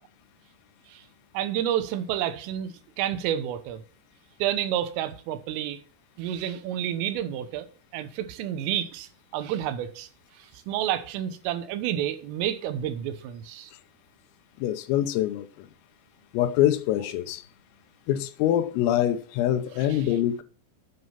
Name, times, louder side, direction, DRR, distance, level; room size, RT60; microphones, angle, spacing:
voice 1, 1.4-3.8 4.4-5.8 6.2-7.7 7.9-10.1 10.4-13.7 19.8-20.2, right 11 dB, 80° right, 3.5 m, -30 dB
voice 2, 14.6-15.7 16.3-17.4 18.1-20.4, left 12 dB, 90° left, 3.6 m, -25 dB
9.3 x 8.2 x 5.7 m
omnidirectional pair, 5.8 m